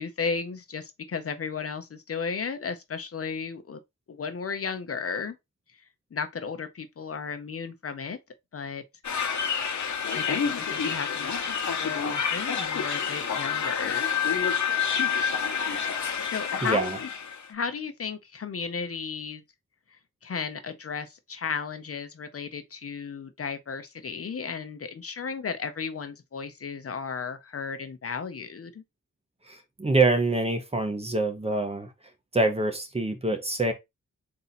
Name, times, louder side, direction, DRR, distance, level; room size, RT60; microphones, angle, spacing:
voice 1, 0.0-3.8 4.1-5.4 6.1-8.2 8.5-8.8 10.1-11.3 11.8-14.1 15.7-16.0 16.3-16.9 17.5-19.4 20.2-28.8, left 5 dB, 45° left, 0.6 m, -34 dB
sound 1, 9.0-17.5, left 7 dB, 65° left, 1.0 m, -28 dB
voice 2, 16.6-17.0 29.5-31.9 32.3-33.7, right 2 dB, 20° right, 0.7 m, -25 dB
4.1 x 2.7 x 4.0 m
wide cardioid pair, 165°, 32 cm